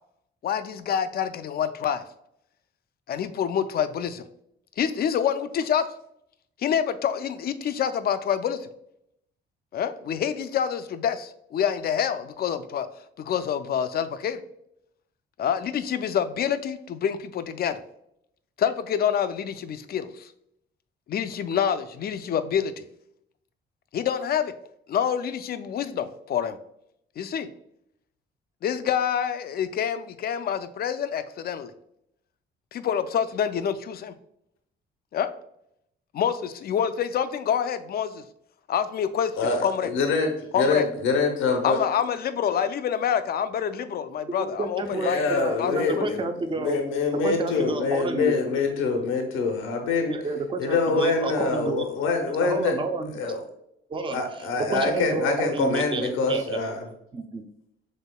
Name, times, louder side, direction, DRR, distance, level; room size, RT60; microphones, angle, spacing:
voice 1, 0.4-2.0 3.1-4.2 4.8-5.8 6.6-8.7 9.7-12.9 13.2-14.4 15.4-17.8 18.6-20.3 21.1-22.8 23.9-24.5 24.9-26.6 27.2-27.5 28.6-31.7 32.7-34.1 35.1-35.3 36.1-38.2 38.7-39.9 40.5-40.8 41.6-45.2 45.6-46.1, left 8 dB, 50° left, 11 dB, 0.4 m, -27 dB
voice 2, 39.4-41.8 44.9-46.2 46.5-50.2 50.6-52.8 53.1-53.4 54.1-56.9, left 4 dB, 85° left, 4 dB, 0.7 m, -25 dB
voice 3, 44.4-46.8 47.2-48.4 50.1-51.9 52.4-53.1 53.9-54.2 54.7-56.6 57.1-57.4, right 3 dB, 25° right, 6 dB, 0.5 m, -30 dB
5.4 x 3.5 x 2.2 m, 0.76 s
cardioid pair, 90°, 20 cm